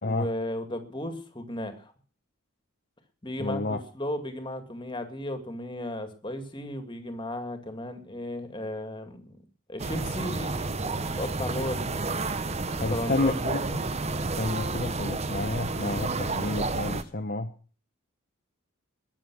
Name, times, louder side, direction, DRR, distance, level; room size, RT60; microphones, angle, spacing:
voice 1, 0.0-1.9 3.2-9.4 9.7-12.2 12.9-13.8, left 1 dB, 20° left, 8 dB, 2.0 m, -35 dB
voice 2, 3.4-3.8 12.8-13.6 14.4-17.5, left 2 dB, 45° left, 6 dB, 0.9 m, -30 dB
sound 1, 9.8-17.0, right 3 dB, 30° right, 0.9 m, -30 dB
20.5 x 7.2 x 6.1 m, 0.40 s
head